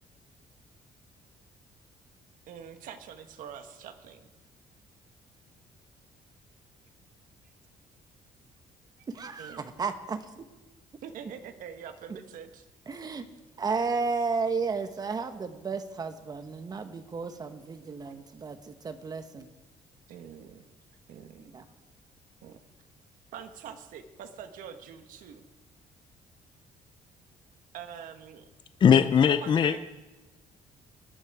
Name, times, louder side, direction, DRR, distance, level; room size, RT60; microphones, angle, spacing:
voice 1, 2.5-4.2 9.0-9.1 9.4-9.7 11.0-12.7 18.0-18.1 20.1-20.7 21.1-21.7 22.4-22.6 23.3-25.4 27.7-28.4 29.3-29.8, right 8 dB, 75° right, 1.5 m, -44 dB
voice 2, 9.1-10.4 12.1-12.2 12.9-13.3 13.6-19.5 21.5-21.6, right 4 dB, 30° right, 1.1 m, -33 dB
voice 3, 28.8-29.8, left 7 dB, 35° left, 0.5 m, -20 dB
22.0 x 10.5 x 4.8 m
cardioid pair, 150°, 14 cm